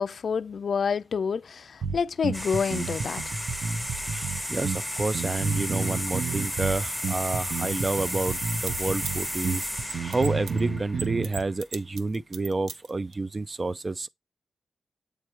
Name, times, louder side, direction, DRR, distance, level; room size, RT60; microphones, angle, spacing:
voice 1, 0.0-3.2, left 6 dB, 60° left, 0.3 m, -28 dB
sound 1, 1.8-11.4, right 5 dB, 60° right, 0.9 m, -31 dB
sound 2, 2.3-11.5, equal, 10° right, 1.5 m, -33 dB
voice 2, 4.1-9.7 10.0-14.1, right 3 dB, 30° right, 0.3 m, -29 dB
sound 3, 7.4-7.5 7.7-7.8 8.1-10.6 11.0-13.1, right 5 dB, 85° right, 0.7 m, -37 dB
8.2 x 3.2 x 4.6 m
wide cardioid pair, 135°, 0 cm